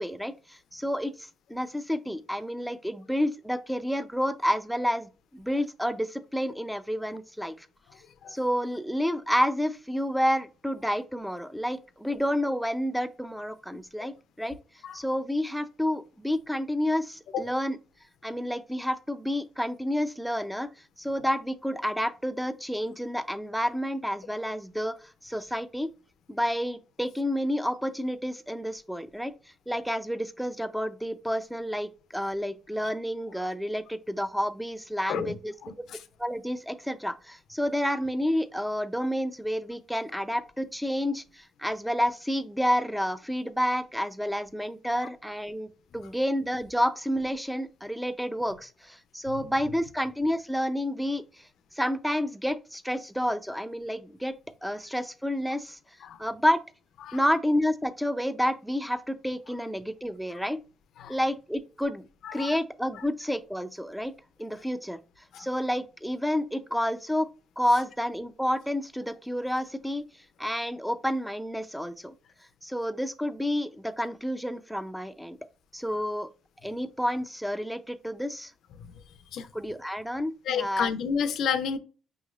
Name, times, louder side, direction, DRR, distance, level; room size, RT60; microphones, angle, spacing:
voice 1, 0.0-7.7 8.3-14.6 14.9-17.8 18.2-20.7 21.0-24.9 25.2-25.9 26.3-29.3 29.7-35.5 36.2-51.5 51.7-54.3 54.6-55.8 56.2-56.6 57.1-60.6 61.1-62.1 62.3-64.1 64.4-65.0 65.4-67.3 67.6-70.1 70.4-72.1 72.6-75.4 75.7-76.3 76.6-78.5 79.5-80.9, equal, ahead, 0.5 m, -29 dB
voice 2, 35.6-36.0 56.0-56.2 57.0-57.2 61.0-61.1 62.2-62.5 65.3-65.5 79.3-79.5 80.5-81.8, left 7 dB, 75° left, 0.5 m, -30 dB
5.3 x 3.1 x 2.4 m
cardioid pair, 90°, 0 cm